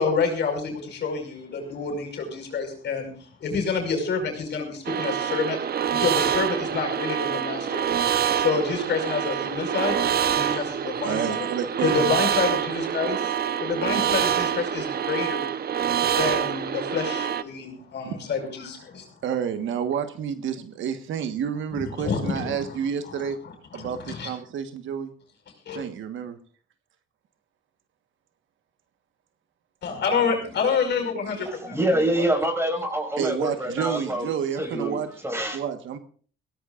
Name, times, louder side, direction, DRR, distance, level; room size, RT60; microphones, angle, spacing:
voice 1, 0.0-5.6 6.0-7.9 8.3-10.0 10.3-11.5 11.8-13.3 13.6-15.5 16.1-19.1 21.7-22.8 23.1-24.3 25.7-25.8 29.8-32.0, left 5 dB, 60° left, 5.6 m, -28 dB
sound 1, 4.8-17.4, right 9 dB, 50° right, 0.9 m, -26 dB
voice 2, 11.0-11.9 18.1-18.2 19.2-23.4 23.7-25.1 25.7-26.4 32.1-32.3 33.1-35.1 35.5-36.0, right 8 dB, 75° right, 1.5 m, -29 dB
voice 3, 31.5-34.3 34.6-35.0 35.2-35.6, right 1 dB, 15° right, 6.1 m, -26 dB
22.5 x 17.0 x 2.5 m
cardioid pair, 90°, 20 cm